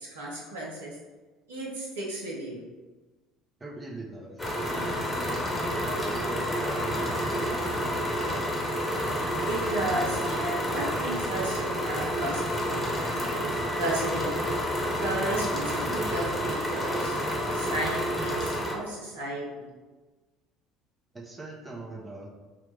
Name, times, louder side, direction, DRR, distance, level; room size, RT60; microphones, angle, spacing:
voice 1, 0.1-0.9 1.5-2.6 9.5-13.2 13.8-14.3 15.0-19.7, right 1 dB, 80° right, -4 dB, 1.1 m, -34 dB
voice 2, 3.6-5.3 5.8-8.5 21.1-22.3, right 2 dB, 20° right, -2 dB, 0.9 m, -41 dB
sound 1, 4.4-18.7, equal, 20° left, 1.2 m, -29 dB
3.9 x 3.1 x 3.3 m, 1.2 s
hypercardioid pair, 60°, 0 cm